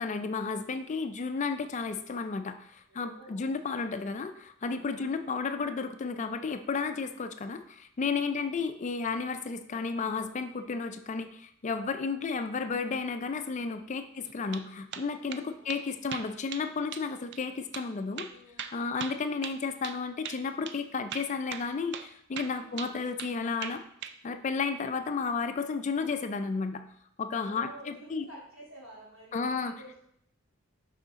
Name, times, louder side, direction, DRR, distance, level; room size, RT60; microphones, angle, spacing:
voice 1, 0.0-18.3 18.7-23.8 24.2-26.8 27.2-28.3 29.3-29.7, left 4 dB, 35° left, 9 dB, 0.4 m, -33 dB
voice 2, 2.9-3.6 4.9-5.3 8.3-8.6 14.0-14.3 15.5-16.0 18.0-19.1 22.6-22.9 27.4-30.0, right 1 dB, 75° right, -6 dB, 2.8 m, -52 dB
sound 1, 14.3-14.7 14.9-15.4 15.7-15.8 16.1-16.7 16.9-17.1 17.3-17.4 17.7-17.9 18.2-20.0 20.2-20.4 20.7-20.8 21.1-21.7 21.9-22.1 22.4-23.3 23.6-24.2, right 8 dB, 55° right, 0.4 m, -39 dB
6.7 x 5.0 x 3.6 m, 0.71 s
head